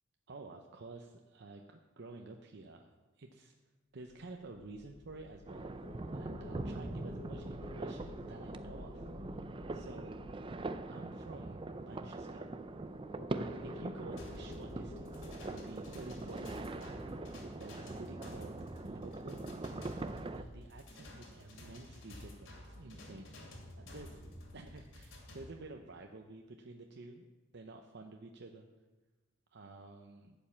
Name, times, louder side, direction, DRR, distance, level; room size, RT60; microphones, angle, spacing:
voice 1, 0.3-2.9 3.2-3.6 3.9-5.8 6.1-9.1 9.7-10.2 10.9-12.5 13.3-17.0 17.6-18.6 18.8-19.4 20.4-23.3 23.8-24.1 24.5-27.3 27.5-28.7 29.5-30.3, right 2 dB, 65° right, 3 dB, 0.7 m, -51 dB
sound 1, 4.1-19.1, left 4 dB, 45° left, 0.4 m, -54 dB
sound 2, 5.5-20.4, right 2 dB, 25° right, 0.5 m, -42 dB
sound 3, 14.2-25.5, left 1 dB, 85° left, 2.6 m, -51 dB
12.0 x 5.4 x 8.4 m, 1.2 s
head